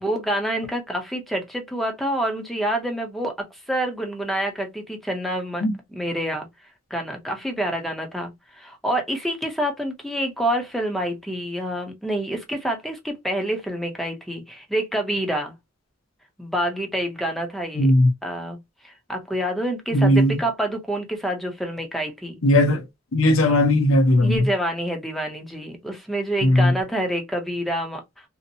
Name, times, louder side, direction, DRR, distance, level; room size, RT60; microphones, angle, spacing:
voice 1, 0.0-5.6 5.9-6.5 6.9-15.5 16.4-17.9 18.2-18.6 18.8-22.4 24.2-28.0, right 1 dB, ahead, 0.6 m, -27 dB
voice 2, 17.8-18.1 19.9-20.4 22.4-22.8 23.1-24.5 26.4-26.7, left 1 dB, 80° left, 0.6 m, -17 dB
2.7 x 2.0 x 2.5 m
head